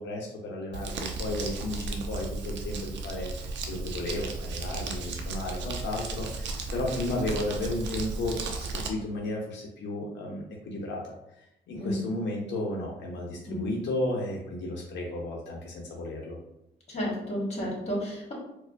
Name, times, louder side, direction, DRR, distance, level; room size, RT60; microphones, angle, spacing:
voice 1, 0.0-11.1 11.7-16.4, left 1 dB, 80° left, -2 dB, 0.6 m, -33 dB
Crumpling crinkling, 0.7-8.9, right 3 dB, 85° right, 0.5 m, -35 dB
voice 2, 16.9-18.3, equal, 35° left, -3 dB, 1.3 m, -32 dB
4.3 x 2.1 x 2.5 m, 0.84 s
cardioid pair, 100°, 18 cm